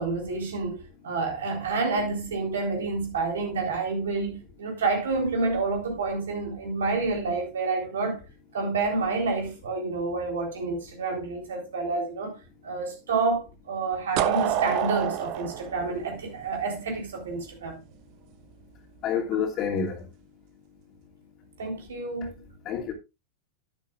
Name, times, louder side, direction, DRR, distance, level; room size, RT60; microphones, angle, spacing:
voice 1, 0.0-8.2 8.5-17.8 19.3-19.4 21.6-22.4, right 3 dB, 65° right, 4.0 m, -29 dB
sound 1, 14.2-17.0, right 10 dB, 40° right, 1.1 m, -27 dB
voice 2, 19.0-20.1 22.6-22.9, left 7 dB, 35° left, 2.7 m, -28 dB
11.5 x 11.0 x 2.5 m
figure-of-eight pair, 90°, 0 cm